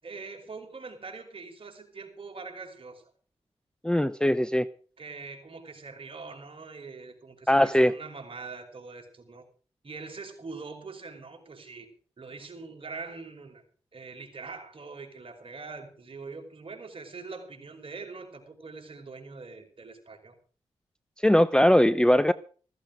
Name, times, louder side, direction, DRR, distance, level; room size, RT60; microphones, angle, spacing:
voice 1, 0.0-3.1 5.0-9.4 9.8-11.9 12.2-13.6 13.9-20.3, right 4 dB, 45° right, 5.2 m, -43 dB
voice 2, 3.8-4.7 7.5-7.9 21.2-22.3, left 1 dB, 5° left, 0.8 m, -20 dB
15.5 x 14.5 x 5.2 m
cardioid pair, 50°, 12 cm